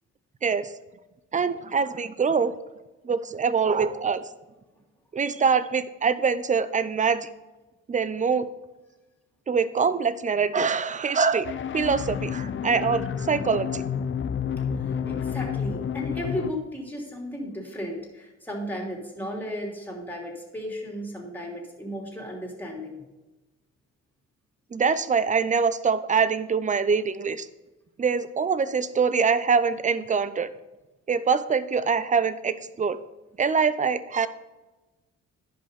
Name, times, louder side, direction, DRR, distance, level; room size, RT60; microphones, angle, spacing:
voice 1, 1.3-2.5 3.0-4.2 5.1-7.3 7.9-8.5 9.5-13.8 24.7-27.5 28.0-30.5 31.1-33.0 33.4-34.3, right 5 dB, 25° right, 14 dB, 0.6 m, -24 dB
sound 1, 11.4-16.5, left 7 dB, 40° left, 0.6 m, -30 dB
voice 2, 14.7-23.0, equal, 5° left, 0 dB, 2.9 m, -35 dB
10.5 x 5.4 x 5.2 m, 1.1 s
cardioid pair, 90°, 30 cm